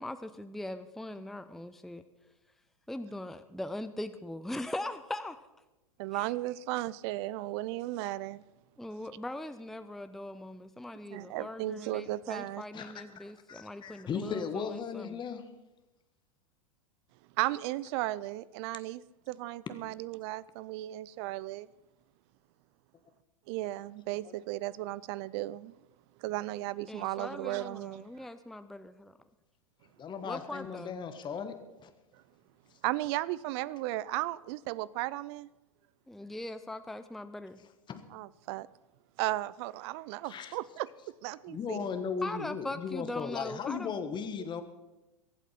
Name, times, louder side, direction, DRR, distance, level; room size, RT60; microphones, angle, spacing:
voice 1, 0.0-2.0 2.9-5.4 6.1-6.3 8.8-15.2 26.9-29.1 30.2-30.9 36.1-37.6 42.2-43.9, left 1 dB, ahead, 0.6 m, -40 dB
voice 2, 6.0-8.4 11.1-12.6 17.4-21.7 23.5-25.7 26.2-28.0 32.8-35.5 38.1-38.7 39.2-40.9 41.2-41.8, right 17 dB, 50° right, 0.5 m, -35 dB
voice 3, 12.7-15.5 24.2-24.3 30.0-31.9 37.9-38.0 40.2-40.6 41.5-44.6, left 6 dB, 25° left, 1.5 m, -37 dB
23.0 x 8.3 x 5.8 m
hypercardioid pair, 100°, 18 cm